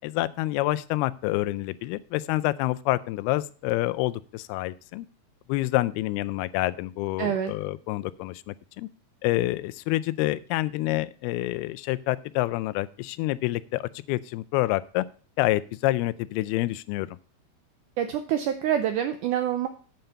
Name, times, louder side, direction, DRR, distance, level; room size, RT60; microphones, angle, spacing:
voice 1, 0.0-5.1 5.5-8.9 9.2-15.1 15.4-17.2, left 17 dB, 90° left, 16 dB, 2.5 m, -27 dB
voice 2, 7.2-7.5 18.0-19.7, right 10 dB, 85° right, 9 dB, 1.8 m, -26 dB
9.1 x 6.6 x 5.7 m, 0.40 s
omnidirectional pair, 4.4 m